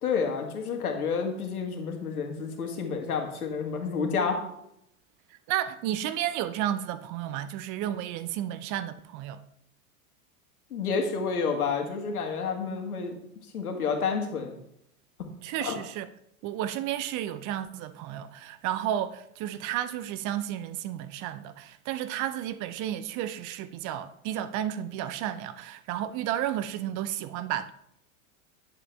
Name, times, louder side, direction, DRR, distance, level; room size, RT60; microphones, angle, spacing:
voice 1, 0.0-4.4 10.7-13.2 13.5-14.6 15.6-15.7, left 5 dB, 85° left, 2.0 m, -29 dB
voice 2, 5.5-9.4 15.4-16.1 16.4-27.7, right 11 dB, 45° right, 0.7 m, -32 dB
11.0 x 7.3 x 3.5 m
hypercardioid pair, 95°, 43 cm